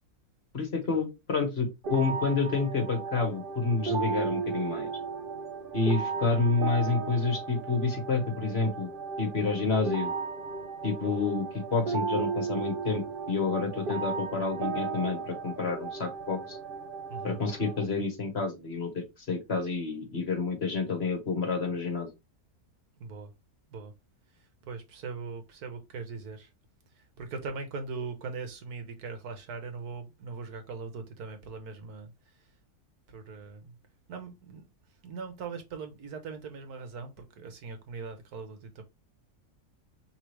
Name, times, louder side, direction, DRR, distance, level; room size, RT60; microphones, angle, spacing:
voice 1, 0.5-4.9 5.7-8.9 9.2-10.1 10.8-16.6 17.2-22.1, left 4 dB, 45° left, 1.4 m, -29 dB
sound 1, 1.8-17.8, right 5 dB, 45° right, 0.7 m, -35 dB
voice 2, 17.1-17.4 23.0-23.3 23.7-23.9 24.3-26.5 26.9-32.5 33.1-33.7 34.1-38.8, right 4 dB, 80° right, 1.5 m, -41 dB
4.7 x 3.4 x 3.1 m
omnidirectional pair, 1.6 m